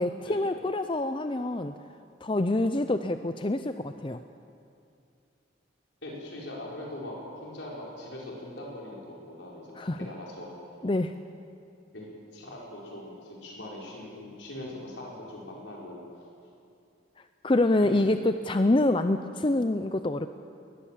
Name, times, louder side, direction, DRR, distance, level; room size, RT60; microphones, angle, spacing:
voice 1, 0.0-1.7 2.2-4.2 9.8-10.1 10.8-11.1 17.4-20.3, left 2 dB, 25° left, 9 dB, 0.5 m, -26 dB
voice 2, 6.0-10.5 10.8-10.9 11.9-12.1 12.3-16.3 17.8-18.1, left 1 dB, 80° left, -3 dB, 4.8 m, -41 dB
21.0 x 20.5 x 7.4 m, 2.5 s
head